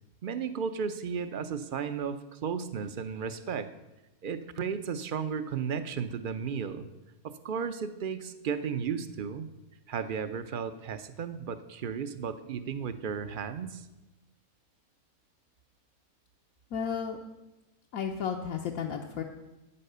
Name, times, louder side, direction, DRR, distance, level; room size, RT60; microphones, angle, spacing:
voice 1, 0.2-3.7 4.2-6.9 7.2-9.5 9.9-13.8, right 6 dB, 50° right, 11 dB, 0.6 m, -34 dB
voice 2, 16.7-17.2 17.9-19.2, left 7 dB, 75° left, 1 dB, 1.3 m, -33 dB
9.7 x 9.2 x 6.6 m, 1.0 s
omnidirectional pair, 1.5 m